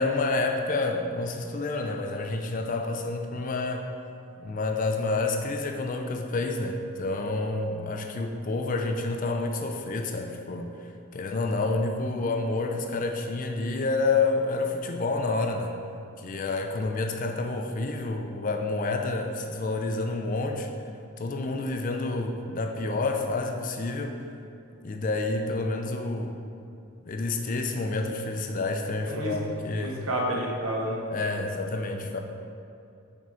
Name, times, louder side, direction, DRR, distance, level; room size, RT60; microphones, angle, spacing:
voice 1, 0.0-3.9 4.4-10.8 11.1-15.7 16.2-20.7 21.2-24.2 24.8-26.4 27.1-30.1 31.1-32.2, left 3 dB, 35° left, 4 dB, 0.4 m, -29 dB
voice 2, 29.0-29.3 29.8-31.0, right 1 dB, 70° right, -2 dB, 1.0 m, -30 dB
6.0 x 3.6 x 4.3 m, 2.5 s
head